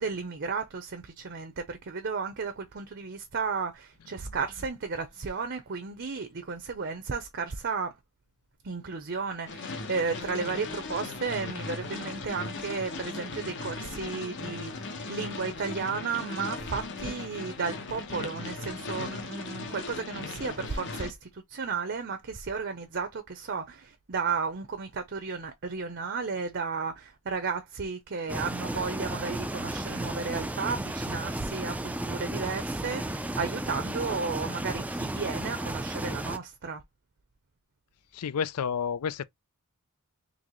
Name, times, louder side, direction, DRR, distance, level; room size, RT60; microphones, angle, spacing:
voice 1, 0.0-7.9 8.6-36.8, right 5 dB, 50° right, 0.7 m, -33 dB
sound 1, 9.5-21.1, left 3 dB, 55° left, 1.0 m, -38 dB
sound 2, 28.3-36.4, right 1 dB, 5° right, 0.4 m, -34 dB
voice 2, 38.1-39.2, left 7 dB, 85° left, 0.4 m, -30 dB
4.1 x 3.0 x 3.0 m
head